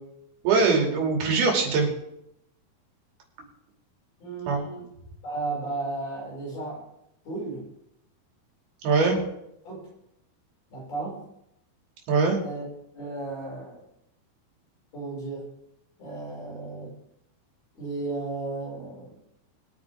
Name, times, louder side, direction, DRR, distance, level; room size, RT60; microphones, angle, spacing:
voice 1, 0.4-1.9 4.5-4.6 8.8-9.1 12.1-12.4, right 4 dB, 80° right, 0 dB, 4.5 m, -22 dB
voice 2, 4.2-4.9 5.2-6.8 7.2-7.7 9.1-9.2 9.6-9.9 10.7-11.3 12.4-12.6 12.9-13.8 14.9-15.5 16.0-16.9 17.7-19.2, right 3 dB, 70° left, -5 dB, 8.0 m, -34 dB
23.0 x 9.0 x 3.7 m, 0.78 s
omnidirectional pair, 4.4 m